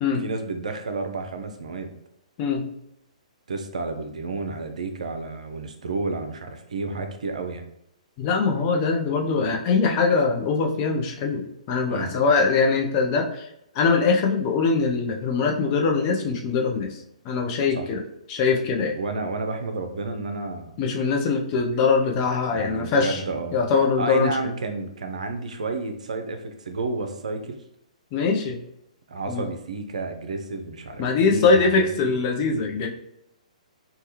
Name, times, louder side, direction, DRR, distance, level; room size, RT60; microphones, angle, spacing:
voice 1, 0.2-1.9 3.5-7.6 11.9-12.2 17.8-17.9 18.9-20.7 22.5-23.6 24.0-27.6 29.1-32.2, right 3 dB, 65° right, 6 dB, 0.5 m, -31 dB
voice 2, 8.2-13.5 13.7-17.0 17.2-18.0 18.3-18.9 20.8-23.2 23.5-24.4 28.1-28.6 29.3-29.4 31.0-32.9, left 4 dB, 35° left, 1 dB, 0.5 m, -22 dB
3.3 x 2.2 x 2.9 m, 0.81 s
figure-of-eight pair, 120°, 4 cm